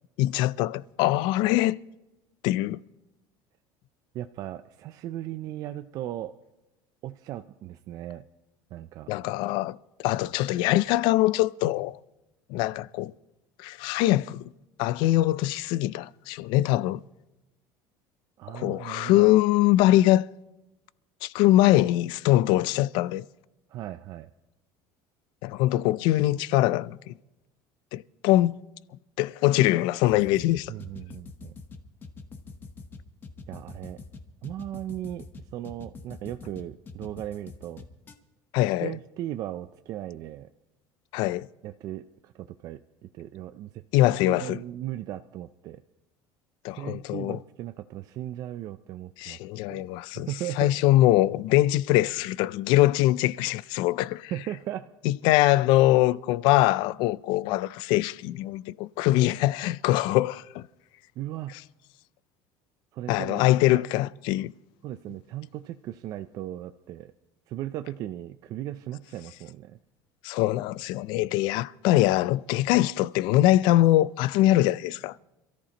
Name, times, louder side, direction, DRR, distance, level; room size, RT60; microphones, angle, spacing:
voice 1, 0.2-1.8 2.4-2.8 9.1-12.0 12.5-13.1 13.6-14.4 14.8-17.0 18.5-20.3 21.2-23.2 25.4-27.1 27.9-28.6 29.2-30.7 38.5-38.9 41.1-41.5 43.9-44.6 46.6-47.4 49.2-50.3 50.6-54.3 55.0-60.6 63.1-64.5 70.2-75.1, left 15 dB, 60° left, 0.4 m, -23 dB
voice 2, 4.1-6.3 7.0-8.2 8.7-9.1 18.4-19.3 23.7-24.3 30.7-31.5 33.5-34.0 34.4-35.3 35.5-37.9 38.8-40.5 41.6-43.8 44.3-45.8 46.7-49.4 49.7-49.9 50.1-50.8 54.3-54.9 61.2-61.5 62.9-63.5 63.7-63.8 64.8-67.1 67.5-69.8, right 13 dB, 40° right, 0.4 m, -37 dB
sound 1, 30.1-38.1, left 3 dB, 25° left, 1.0 m, -44 dB
27.0 x 14.0 x 2.9 m
cardioid pair, 170°, 9 cm